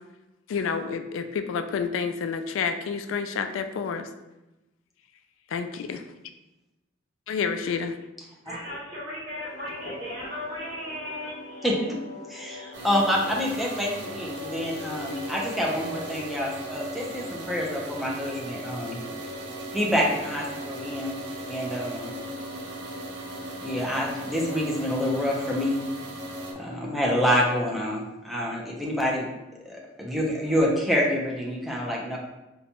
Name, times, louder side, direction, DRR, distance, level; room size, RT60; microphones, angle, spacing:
voice 1, 0.5-4.1 5.5-6.0 7.3-7.9, left 6 dB, 85° left, 8 dB, 0.3 m, -29 dB
voice 2, 8.4-11.7, left 1 dB, 30° right, -10 dB, 1.3 m, -36 dB
sound 1, 9.4-27.8, left 1 dB, 40° left, 0.7 m, -44 dB
voice 3, 11.6-12.0 12.3-19.0 19.7-21.2 21.5-22.2 23.6-25.8 26.5-29.3 29.7-32.2, equal, ahead, -3 dB, 0.5 m, -27 dB
sound 2, 12.7-26.5, right 1 dB, 65° right, 0.5 m, -38 dB
3.9 x 2.2 x 2.8 m, 0.99 s
head